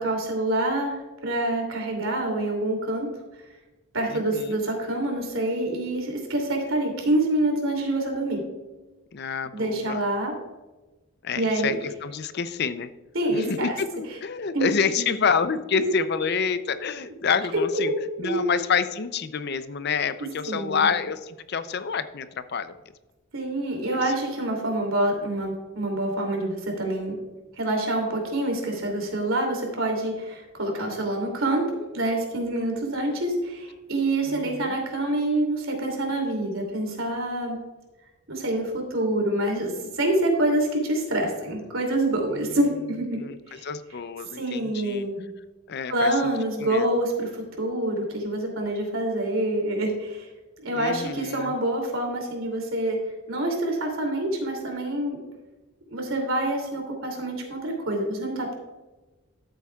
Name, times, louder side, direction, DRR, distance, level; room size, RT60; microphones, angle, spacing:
voice 1, 0.0-3.1 3.9-8.4 9.5-10.3 11.3-11.8 13.1-13.7 14.5-14.7 15.0-15.1 15.7-15.9 17.5-17.9 18.2-18.4 20.5-20.9 23.3-27.2 27.6-37.6 38.3-43.2 43.5-43.6 44.4-45.2 45.9-50.3 50.6-53.0 53.3-55.2 55.9-58.5, right 1 dB, 75° right, 1 dB, 2.8 m, -26 dB
voice 2, 4.1-4.6 9.1-10.0 11.2-11.7 12.0-12.9 13.3-17.9 18.2-22.7 34.3-34.7 42.3-42.6 43.2-43.4 43.6-45.1 45.7-46.1 46.6-46.9 50.7-51.5, left 6 dB, 50° left, 12 dB, 0.5 m, -28 dB
13.0 x 7.9 x 2.4 m, 1.1 s
head